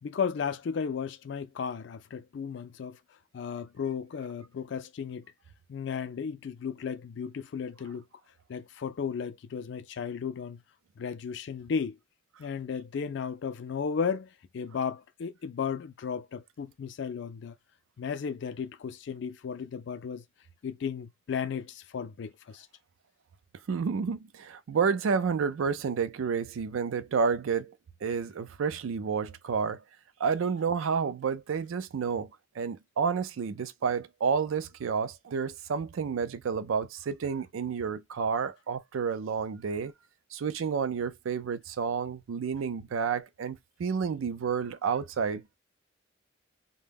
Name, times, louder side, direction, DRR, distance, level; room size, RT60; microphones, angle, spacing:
voice 1, 0.0-3.0 3.3-5.2 5.7-8.0 8.5-10.6 11.0-12.0 12.4-17.5 18.0-20.2 20.6-22.7, left 6 dB, 60° left, 0.3 m, -34 dB
voice 2, 23.7-27.7 28.0-29.8 30.2-32.3 32.6-39.9 40.3-45.6, right 6 dB, 90° right, 0.4 m, -30 dB
2.2 x 2.1 x 3.3 m
head